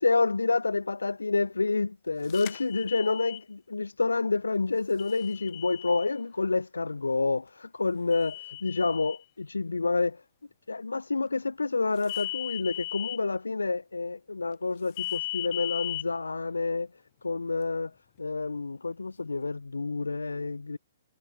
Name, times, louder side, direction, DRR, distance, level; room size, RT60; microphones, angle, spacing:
voice 1, 0.0-10.2 10.7-16.9 17.2-17.9 18.2-20.8, left 3 dB, 75° left, 0.8 m, -28 dB
sound 1, 2.3-3.4 5.0-6.1 8.1-9.2 12.0-13.2 15.0-16.0, left 20 dB, 35° left, 0.5 m, -37 dB
figure-of-eight pair, 120°, 0 cm